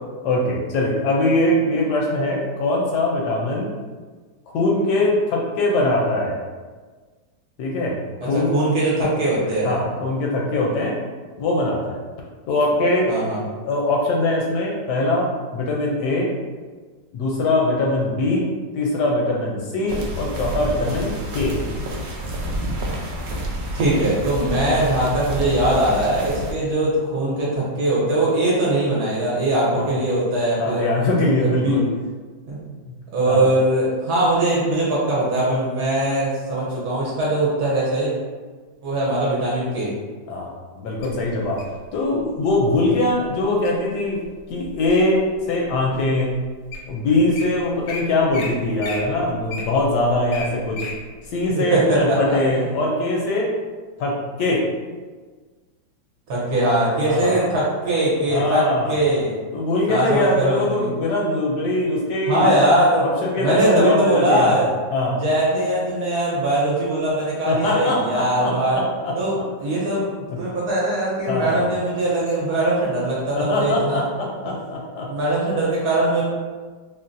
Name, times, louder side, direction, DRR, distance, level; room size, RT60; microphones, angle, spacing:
voice 1, 0.2-3.7 4.5-6.4 7.6-8.0 8.2-8.5 9.6-10.9 11.4-12.0 12.5-13.1 13.6-16.3 17.1-18.5 18.7-21.6 29.7-29.9 30.6-31.9 33.3-33.5 40.3-41.6 41.9-44.2 44.5-46.4 46.9-50.8 51.3-53.5 54.0-54.7 57.0-57.5 58.3-59.0 59.5-62.5 63.0-64.6 64.9-65.2 67.5-69.1 71.3-71.6 73.3-75.1, left 2 dB, 75° left, -2 dB, 1.0 m, -22 dB
voice 2, 8.3-9.8 13.1-13.4 23.7-30.9 31.3-31.8 32.5-32.6 33.1-38.2 38.8-39.9 51.5-52.6 56.3-59.3 59.9-60.9 62.3-63.1 63.4-64.7 65.1-68.8 69.1-74.0 74.4-74.5 75.1-76.2, right 1 dB, 65° right, -7 dB, 1.2 m, -21 dB
sound 1, 19.9-26.5, right 1 dB, 90° right, 0.7 m, -29 dB
Wild animals, 41.0-41.8 42.5-42.8 43.3-43.7 44.2-45.2 45.8-45.9 46.4-46.5 46.7-46.9 47.1-47.4 47.9-48.0 48.3-48.5 48.8-51.0 51.4-51.5, left 3 dB, 90° left, 1.4 m, -33 dB
3.8 x 2.1 x 2.5 m, 1.4 s
omnidirectional pair, 2.1 m